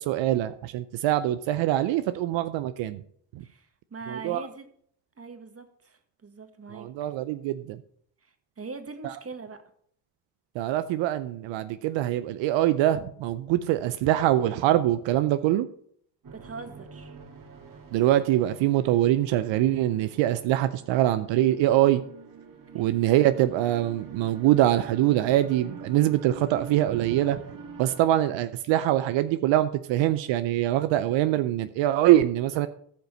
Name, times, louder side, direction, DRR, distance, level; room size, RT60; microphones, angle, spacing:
voice 1, 0.0-3.0 4.1-4.4 6.7-7.8 10.6-15.7 17.9-22.0 22.7-27.4 27.8-32.7, right 13 dB, 85° right, 12 dB, 0.6 m, -23 dB
voice 2, 3.4-4.7 5.2-7.1 8.2-9.6 16.3-17.2 22.7-23.0, right 4 dB, 30° right, 8 dB, 1.6 m, -42 dB
sound 1, 16.2-28.1, right 5 dB, 50° right, 1.8 m, -45 dB
15.0 x 5.4 x 5.3 m, 0.63 s
supercardioid pair, 60°, 44 cm